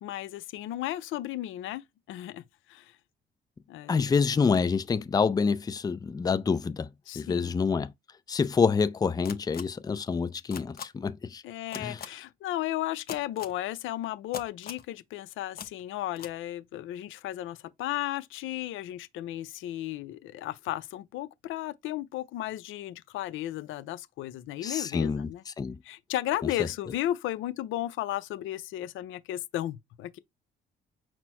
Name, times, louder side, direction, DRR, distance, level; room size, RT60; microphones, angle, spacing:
voice 1, 0.0-2.4 2.7-2.9 3.7-4.1 7.1-7.5 11.4-25.4 25.8-30.2, left 14 dB, 85° left, 0.5 m, -34 dB
voice 2, 3.9-6.9 7.2-7.9 8.3-11.4 11.8-12.0 24.6-25.8, left 5 dB, 20° left, 0.4 m, -27 dB
sound 1, 9.2-9.6 10.5-10.8 11.7-12.1 13.1-13.5 14.3-14.8 15.6-15.7 16.1-16.3, left 8 dB, 50° left, 0.7 m, -39 dB
4.4 x 2.0 x 4.2 m
cardioid pair, 90°, 20 cm